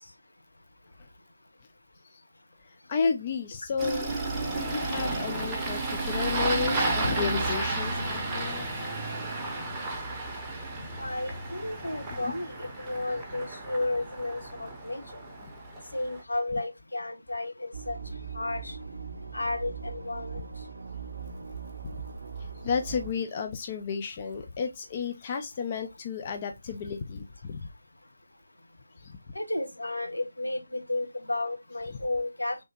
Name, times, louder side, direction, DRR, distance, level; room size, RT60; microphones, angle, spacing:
voice 1, 2.9-4.1 4.6-8.7 12.2-12.3 22.6-27.6, left 5 dB, 25° left, 0.4 m, -32 dB
Engine starting, 3.8-16.2, right 2 dB, 10° right, 0.7 m, -32 dB
voice 2, 11.0-15.2 15.9-18.0 18.3-18.8 19.3-20.5 29.3-32.6, left 2 dB, 75° left, 1.1 m, -33 dB
sound 1, 17.7-23.1, right 6 dB, 45° right, 0.6 m, -40 dB
3.3 x 2.7 x 4.1 m
figure-of-eight pair, 155°, 0 cm